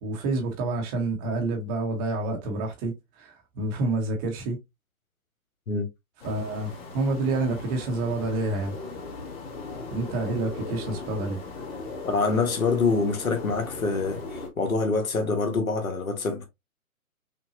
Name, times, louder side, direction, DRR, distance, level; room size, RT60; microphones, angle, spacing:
voice 1, 0.0-4.6 6.2-8.8 9.9-11.4, right 2 dB, 15° right, 0.8 m, -28 dB
sound 1, 6.2-14.5, left 3 dB, 45° left, 1.7 m, -38 dB
voice 2, 12.0-16.5, left 4 dB, 70° left, 1.3 m, -25 dB
5.7 x 2.2 x 2.7 m
figure-of-eight pair, 135°, 43 cm